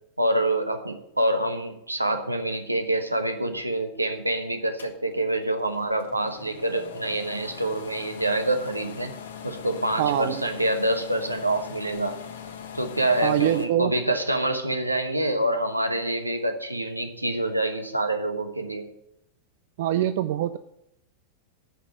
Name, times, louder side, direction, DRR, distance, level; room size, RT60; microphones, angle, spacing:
voice 1, 0.2-9.1 9.4-12.2 12.7-18.9, right 1 dB, 85° right, 7 dB, 1.1 m, -26 dB
sound 1, 4.8-13.6, left 7 dB, 65° left, 1.2 m, -41 dB
voice 2, 10.0-10.4 13.2-13.9 19.8-20.6, right 12 dB, 55° right, 12 dB, 0.4 m, -24 dB
10.0 x 5.9 x 8.6 m, 0.79 s
figure-of-eight pair, 90°, 0 cm